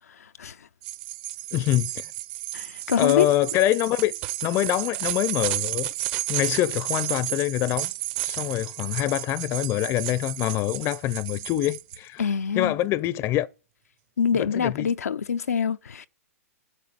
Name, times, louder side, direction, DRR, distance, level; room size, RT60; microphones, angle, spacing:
voice 1, 0.1-0.7 2.5-3.3 12.2-12.7 14.2-16.1, left 7 dB, 80° left, 0.6 m, -25 dB
sound 1, 0.8-12.0, right 16 dB, 45° right, 1.0 m, -32 dB
voice 2, 1.5-2.1 3.0-4.1 4.4-5.9 6.3-7.9 8.2-12.3 12.5-13.5 14.3-14.9, left 14 dB, 30° left, 0.6 m, -25 dB
9.7 x 8.3 x 8.3 m
hypercardioid pair, 115°, 8 cm